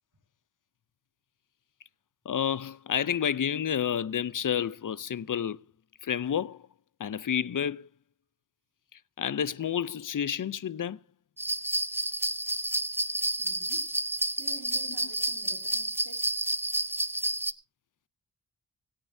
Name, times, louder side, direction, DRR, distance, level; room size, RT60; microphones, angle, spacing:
voice 1, 2.3-5.6 6.0-6.7 7.0-7.9 8.9-11.0, left 8 dB, 50° left, 0.6 m, -30 dB
sound 1, 11.4-17.5, right 1 dB, 5° right, 0.5 m, -30 dB
voice 2, 13.4-13.9 14.4-16.5, right 2 dB, 60° right, 3.7 m, -50 dB
24.5 x 9.0 x 2.7 m
wide cardioid pair, 85°, 41 cm